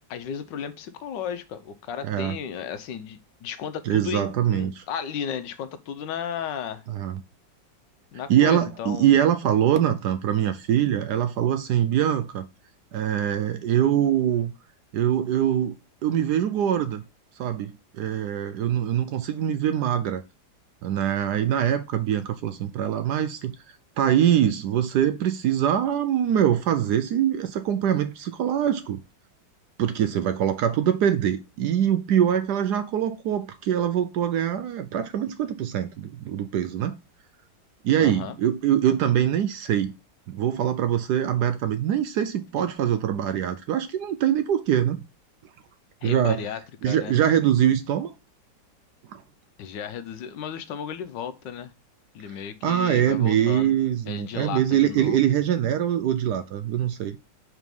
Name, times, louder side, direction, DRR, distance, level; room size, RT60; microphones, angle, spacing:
voice 1, 0.1-6.8 8.1-9.1 38.0-38.3 46.0-46.6 46.8-47.1 49.6-51.7 52.1-53.7 54.1-55.2, left 8 dB, 75° left, 1.3 m, -34 dB
voice 2, 2.0-2.4 3.9-4.8 6.9-7.2 8.3-12.5 12.9-14.5 14.9-15.7 16.0-17.0 17.4-20.2 20.8-23.5 24.0-29.0 29.8-37.0 37.8-39.9 40.3-45.0 46.0-46.4 46.8-48.1 49.1-49.2 52.6-57.2, right 10 dB, 70° right, 1.0 m, -23 dB
4.7 x 4.1 x 5.2 m
omnidirectional pair, 2.1 m